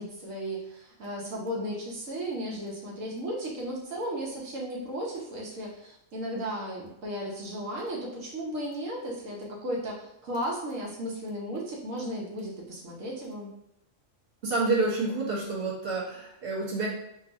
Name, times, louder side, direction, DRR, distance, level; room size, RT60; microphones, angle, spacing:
voice 1, 0.0-13.5, equal, 85° right, -3 dB, 1.3 m, -35 dB
voice 2, 14.4-16.9, right 3 dB, 50° right, -5 dB, 1.2 m, -28 dB
5.3 x 2.7 x 2.5 m, 0.81 s
omnidirectional pair, 1.3 m